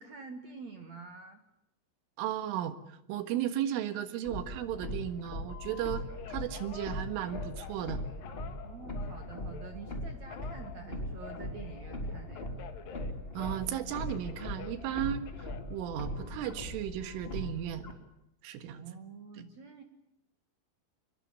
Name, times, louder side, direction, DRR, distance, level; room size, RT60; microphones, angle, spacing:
voice 1, 0.0-1.4 8.6-12.5 18.7-19.8, right 5 dB, 55° right, 6 dB, 2.0 m, -47 dB
voice 2, 2.2-6.0 6.3-8.0 13.3-15.3 15.7-17.9 18.4-18.9 19.4-19.5, right 11 dB, 80° right, 10 dB, 4.1 m, -35 dB
sound 1, 4.2-17.9, left 1 dB, 15° left, 3.0 m, -40 dB
Telephone, 5.5-9.8 10.3-13.7 14.0-16.5 17.0-17.5, left 9 dB, 60° left, 2.7 m, -50 dB
24.5 x 22.0 x 8.6 m, 0.83 s
omnidirectional pair, 5.8 m